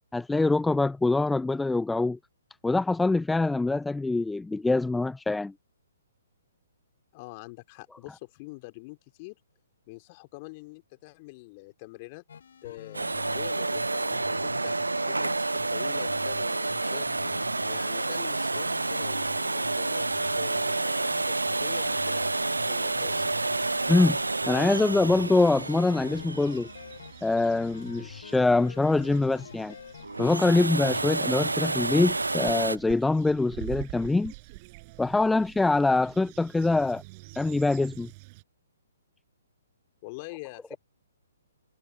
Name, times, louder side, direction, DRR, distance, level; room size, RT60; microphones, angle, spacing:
voice 1, 0.1-2.2 2.6-5.5 23.9-24.2 24.5-26.7 27.2-29.7 30.2-34.3 35.0-37.0 37.4-38.1, left 3 dB, 5° left, 0.3 m, -24 dB
voice 2, 7.1-9.4 9.9-12.2 12.6-14.7 15.0-17.1 17.7-20.1 20.4-23.3 40.0-40.8, left 26 dB, 30° left, 4.2 m, -45 dB
sound 1, 12.3-32.1, left 7 dB, 55° left, 3.8 m, -45 dB
Domestic sounds home sounds, 12.9-27.7 30.0-32.8, right 3 dB, 75° right, 0.4 m, -29 dB
sound 2, 21.7-38.4, right 27 dB, 30° right, 5.9 m, -48 dB
figure-of-eight pair, 125°, 0 cm